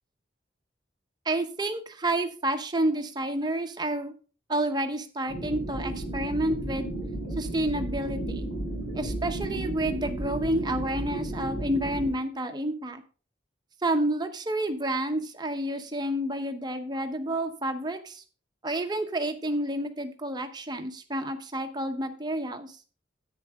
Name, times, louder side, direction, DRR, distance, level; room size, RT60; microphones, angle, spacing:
voice 1, 1.2-4.1 4.5-6.9 7.3-8.5 8.9-13.0 13.8-18.2 18.6-22.7, right 1 dB, 20° right, 6 dB, 0.9 m, -29 dB
sound 1, 5.3-12.1, right 1 dB, 70° left, 5.3 m, -33 dB
10.0 x 8.9 x 3.6 m, 0.37 s
head